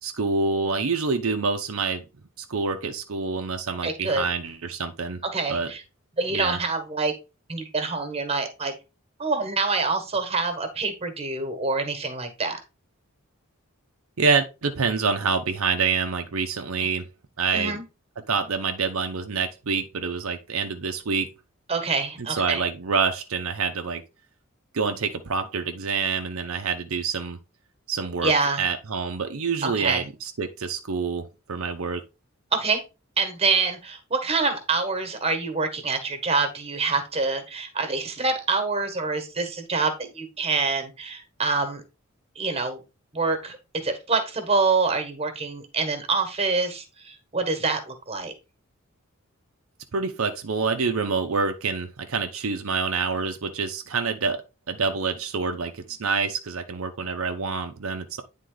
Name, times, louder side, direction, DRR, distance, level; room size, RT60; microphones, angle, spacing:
voice 1, 0.0-2.0 2.5-5.2 5.5-5.7 6.3-6.6 14.2-17.1 17.4-17.8 18.3-21.3 22.3-24.0 24.7-27.4 27.9-28.3 28.6-32.0 49.9-58.2, right 5 dB, 80° right, 0.7 m, -27 dB
voice 2, 3.8-4.2 5.3-5.8 6.2-7.1 7.5-8.7 9.2-12.6 16.8-16.9 17.5-17.8 21.7-22.6 28.2-28.7 29.6-30.0 32.5-32.8 33.2-41.8 42.3-42.8 43.1-43.6 43.8-48.3, right 4 dB, 30° right, 1.4 m, -26 dB
9.3 x 3.7 x 3.8 m
head